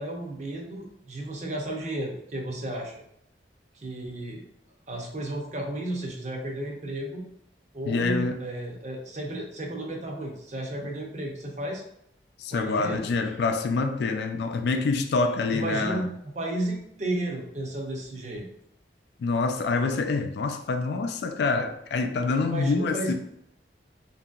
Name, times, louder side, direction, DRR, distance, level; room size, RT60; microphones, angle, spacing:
voice 1, 0.0-3.0 3.7-4.4 4.9-7.2 7.7-11.8 12.5-13.0 15.5-16.1 16.3-18.5 22.5-23.1, right 1 dB, 40° right, 0.6 m, -33 dB
voice 2, 7.9-8.4 12.4-16.0 19.2-23.1, left 4 dB, 65° left, 0.3 m, -26 dB
2.8 x 2.6 x 2.3 m
head